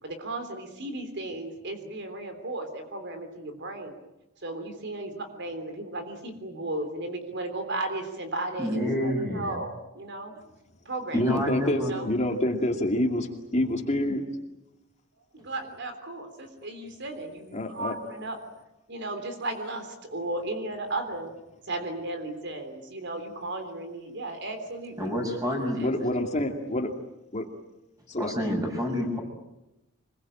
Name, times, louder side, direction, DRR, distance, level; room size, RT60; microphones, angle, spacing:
voice 1, 0.0-3.9 4.4-10.3 10.8-11.4 11.8-12.1 15.3-18.4 18.9-21.3 21.6-25.1 25.8-26.2, right 2 dB, 60° right, 6 dB, 3.5 m, -35 dB
voice 2, 8.6-9.5 11.1-11.9 25.0-25.8 28.2-29.2, equal, 15° right, 2 dB, 6.9 m, -28 dB
voice 3, 11.1-14.2 17.5-17.9 25.8-26.9 27.3-27.5 28.1-28.3, left 1 dB, 35° left, 3 dB, 2.4 m, -27 dB
25.5 x 22.5 x 8.9 m, 0.94 s
head